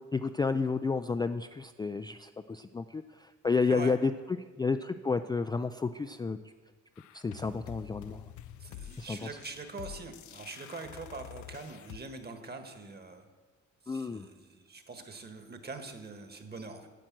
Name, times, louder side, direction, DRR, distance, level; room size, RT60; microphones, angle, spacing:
voice 1, 0.1-4.1 4.6-6.4 7.1-8.2 9.0-9.2 13.9-14.3, left 4 dB, 15° left, 8 dB, 0.3 m, -31 dB
sound 1, 7.0-12.0, left 12 dB, 75° left, 0.5 m, -48 dB
voice 2, 8.6-13.3 13.8-16.9, right 3 dB, 35° right, 7 dB, 1.5 m, -43 dB
10.0 x 7.7 x 7.5 m, 1.4 s
cardioid pair, 90°, 30 cm